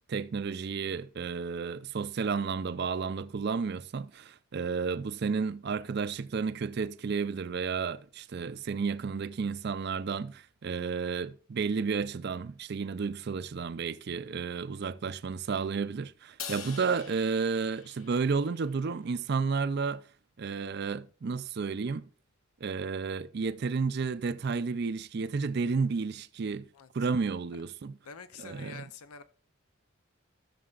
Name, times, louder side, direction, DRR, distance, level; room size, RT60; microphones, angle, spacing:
voice 1, 0.1-20.0 20.4-22.1 22.6-26.7 26.9-28.0 28.4-28.8, right 5 dB, 45° right, 0.4 m, -32 dB
Crash cymbal, 16.4-18.8, left 7 dB, 65° left, 1.0 m, -44 dB
voice 2, 28.0-29.2, left 6 dB, 90° left, 0.7 m, -46 dB
14.5 x 6.7 x 2.4 m
head